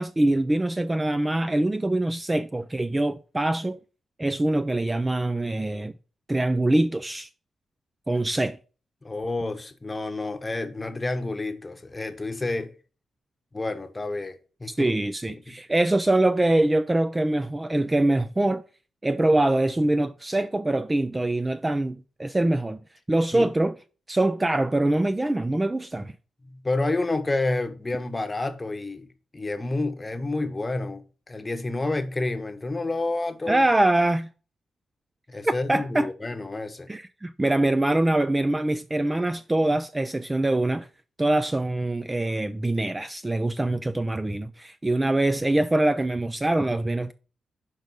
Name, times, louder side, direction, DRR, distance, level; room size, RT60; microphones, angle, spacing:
voice 1, 0.0-3.8 4.2-5.9 6.3-7.3 8.1-8.6 14.7-18.6 19.0-22.8 23.1-23.8 24.1-26.1 33.5-34.3 35.4-36.1 36.9-40.9 41.2-47.1, right 1 dB, 15° right, 0.3 m, -24 dB
voice 2, 9.0-12.7 13.5-14.9 15.5-15.6 23.3-23.5 26.4-29.1 29.3-33.6 35.3-36.9, left 2 dB, 20° left, 0.9 m, -29 dB
5.3 x 5.2 x 6.1 m
cardioid pair, 100°, 0 cm